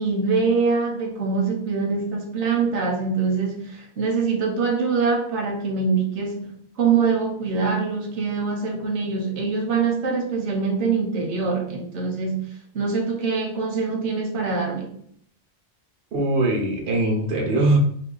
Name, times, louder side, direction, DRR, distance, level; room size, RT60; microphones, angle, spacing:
voice 1, 0.0-14.9, right 4 dB, 85° right, 1.0 m, -24 dB
voice 2, 16.1-17.8, right 2 dB, 60° right, 1.0 m, -21 dB
2.9 x 2.7 x 3.8 m
omnidirectional pair, 1.2 m